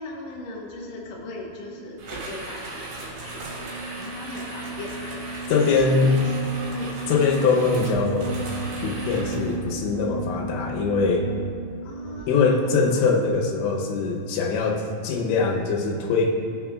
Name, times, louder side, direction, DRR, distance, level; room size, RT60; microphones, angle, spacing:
voice 1, 0.0-6.5 6.7-6.9 9.4-9.6 11.8-13.1, left 2 dB, 65° left, -3 dB, 1.7 m, -39 dB
sound 1, 0.7-13.5, right 3 dB, 90° right, 2.9 m, -36 dB
sound 2, 2.0-9.5, right 2 dB, 60° right, 2.9 m, -37 dB
voice 2, 5.5-6.1 7.1-8.4 8.8-11.2 12.3-16.3, left 4 dB, 85° left, 1 dB, 3.2 m, -22 dB
18.5 x 6.4 x 2.4 m, 2.4 s
omnidirectional pair, 5.1 m